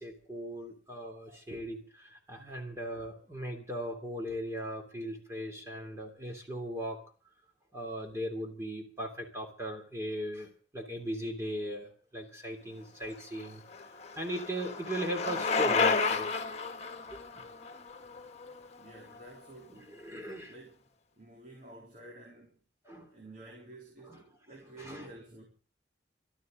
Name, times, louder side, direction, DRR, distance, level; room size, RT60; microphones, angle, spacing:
voice 1, 0.0-7.0 7.7-13.6 13.9-16.3 17.1-17.2 19.8-20.5 22.8-23.1 24.0-24.2 24.8-25.1, equal, 15° right, 3.1 m, -38 dB
Bicycle, 13.2-19.2, left 4 dB, 35° left, 1.6 m, -32 dB
voice 2, 18.8-20.8 21.1-22.6 23.1-25.4, right 2 dB, 45° right, 3.6 m, -51 dB
24.5 x 13.0 x 3.9 m
head